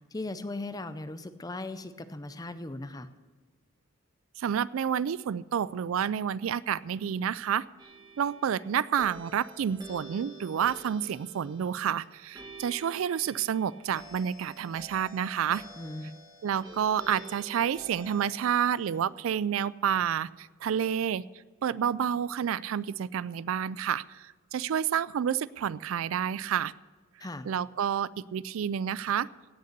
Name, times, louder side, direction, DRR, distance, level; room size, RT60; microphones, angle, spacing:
voice 1, 0.1-3.1 15.8-16.2 27.2-27.5, left 2 dB, 20° left, 12 dB, 0.6 m, -38 dB
voice 2, 4.4-7.7 8.2-15.6 16.4-21.2 21.6-26.7 27.4-29.3, right 8 dB, 75° right, 19 dB, 0.3 m, -29 dB
sound 1, 7.8-19.0, right 1 dB, 20° right, 1.6 m, -49 dB
17.0 x 6.6 x 6.7 m, 1.4 s
head